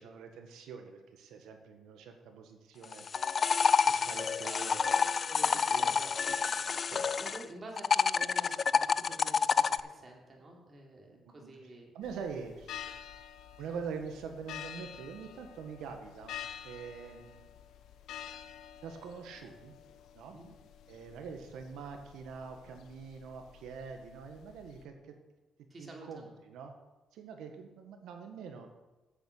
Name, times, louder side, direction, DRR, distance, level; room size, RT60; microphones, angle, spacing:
voice 1, 0.0-3.0 3.9-6.2 6.6-7.4 11.2-12.7 13.6-16.3 16.6-17.5 18.8-19.7 20.1-20.4 20.9-25.1 25.8-26.7 27.1-28.7, right 6 dB, 85° right, 5 dB, 1.5 m, -45 dB
sound 1, 2.8-7.4 7.8-9.8, left 5 dB, 45° left, 0.4 m, -28 dB
voice 2, 5.3-11.9 20.3-20.5 25.7-26.3, right 1 dB, 35° right, -1 dB, 3.0 m, -50 dB
sound 2, 12.0-24.8, left 10 dB, 80° left, 0.8 m, -49 dB
8.5 x 7.8 x 6.6 m, 1.1 s
cardioid pair, 90°, 0 cm